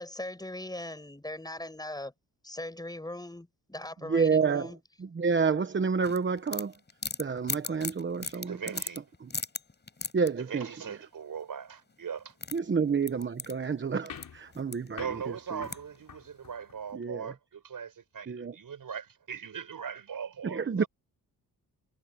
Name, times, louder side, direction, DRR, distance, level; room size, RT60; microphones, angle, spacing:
voice 1, 0.0-2.1 2.4-4.8, left 1 dB, 10° left, 7.0 m, -39 dB
voice 2, 4.1-4.7 5.0-6.7 7.2-8.6 9.2-9.3 10.1-10.7 12.5-15.7 16.9-17.3 18.3-18.5 20.4-20.8, right 5 dB, 30° right, 1.0 m, -29 dB
sound 1, 6.0-10.3 11.9-12.0 12.2-14.3 14.5-15.1 15.6-16.0, left 4 dB, 25° left, 5.6 m, -37 dB
voice 3, 8.3-9.0 10.5-12.4 15.0-20.9, right 7 dB, 55° right, 7.2 m, -40 dB
sound 2, 14.1-17.0, left 7 dB, 55° left, 4.7 m, -48 dB
wide cardioid pair, 140°, 39 cm